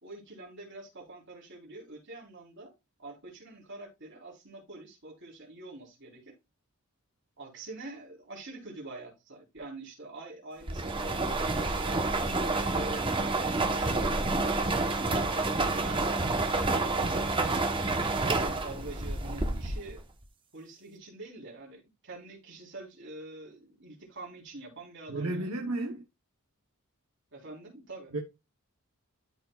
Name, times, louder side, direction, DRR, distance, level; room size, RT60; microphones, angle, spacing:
voice 1, 0.0-2.7 3.0-6.3 7.4-17.6 18.1-20.0 20.5-25.5 27.3-28.1, right 2 dB, 55° right, 3.8 m, -45 dB
sound 1, 10.7-20.0, right 2 dB, 25° right, 1.0 m, -29 dB
voice 2, 25.1-26.0 28.1-28.2, right 2 dB, 75° right, 1.1 m, -32 dB
13.0 x 4.7 x 2.4 m
head